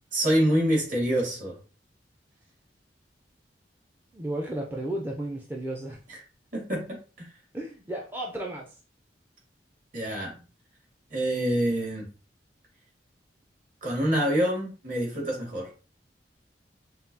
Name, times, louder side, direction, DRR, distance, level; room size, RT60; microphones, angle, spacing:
voice 1, 0.1-1.6 6.1-6.2 6.5-7.3 9.9-10.4 11.1-12.1 13.8-15.7, equal, 50° right, 1.9 m, -26 dB
voice 2, 4.1-6.0 7.5-8.8, right 1 dB, 10° right, 0.4 m, -33 dB
5.5 x 2.3 x 2.7 m
head